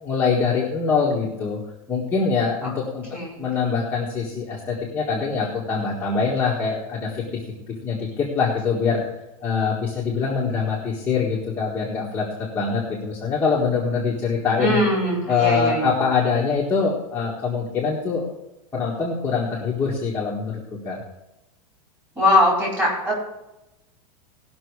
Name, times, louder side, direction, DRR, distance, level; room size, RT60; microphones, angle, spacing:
voice 1, 0.0-1.6 1.9-3.0 3.4-7.4 7.8-9.0 9.4-14.8 15.3-18.3 18.7-21.0, left 5 dB, 10° left, -5 dB, 1.6 m, -24 dB
voice 2, 14.6-15.9 22.2-23.1, left 1 dB, 10° right, -4 dB, 4.5 m, -21 dB
18.0 x 6.1 x 4.8 m, 0.95 s
supercardioid pair, 170°, 18 cm